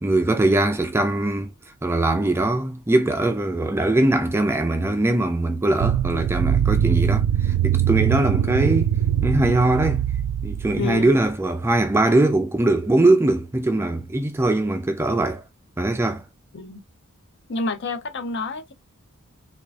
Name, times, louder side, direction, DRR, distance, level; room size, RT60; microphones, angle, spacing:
voice 1, 0.0-1.5 1.8-8.9 9.2-10.0 10.4-15.4 15.8-16.2, right 2 dB, 10° right, 0.3 m, -21 dB
sound 1, 5.8-11.0, right 9 dB, 85° right, 0.3 m, -22 dB
voice 2, 10.8-11.2 16.5-16.8 17.5-18.7, left 3 dB, 50° left, 0.5 m, -28 dB
3.6 x 2.4 x 3.3 m
head